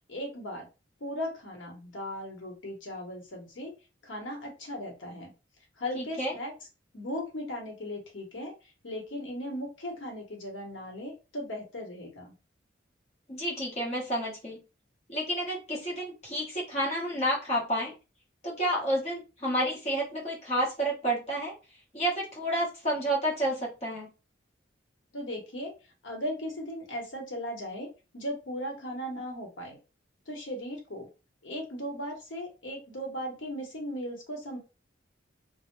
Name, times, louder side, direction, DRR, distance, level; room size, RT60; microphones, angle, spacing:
voice 1, 0.1-0.7 1.0-3.7 4.0-5.3 5.8-6.5 6.9-8.5 8.8-12.3 25.1-25.7 26.0-27.9 28.1-29.8 30.3-31.1 31.4-34.6, equal, 80° left, 1 dB, 0.9 m, -37 dB
voice 2, 5.9-6.3 13.3-14.6 15.1-17.9 18.4-21.5 21.9-24.1, right 1 dB, 35° left, -3 dB, 0.9 m, -30 dB
2.1 x 2.0 x 3.0 m, 0.29 s
head